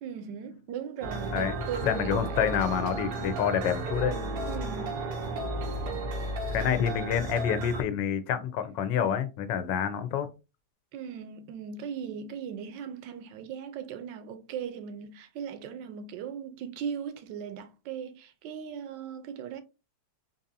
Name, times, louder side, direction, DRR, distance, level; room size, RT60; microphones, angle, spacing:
voice 1, 0.0-2.5 2.9-3.1 4.5-5.0 6.1-6.3 10.9-19.6, right 7 dB, 85° right, 1.3 m, -38 dB
sound 1, 1.0-7.8, right 2 dB, 70° right, 1.3 m, -33 dB
voice 2, 1.8-4.1 6.5-10.3, left 8 dB, 85° left, 1.3 m, -28 dB
4.1 x 2.7 x 2.6 m
omnidirectional pair, 1.9 m